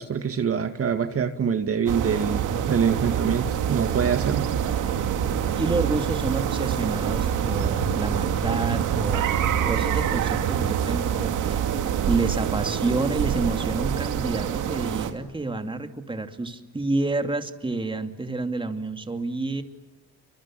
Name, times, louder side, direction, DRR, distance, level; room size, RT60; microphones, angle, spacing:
voice 1, 0.0-4.5, right 7 dB, 50° right, 7 dB, 2.0 m, -25 dB
sound 1, 1.9-15.1, right 9 dB, 80° right, 2.6 m, -25 dB
voice 2, 5.5-9.3 9.6-11.6 12.1-19.6, right 2 dB, 15° right, 6 dB, 2.7 m, -29 dB
29.5 x 25.0 x 7.6 m, 1.1 s
cardioid pair, 90°, 30 cm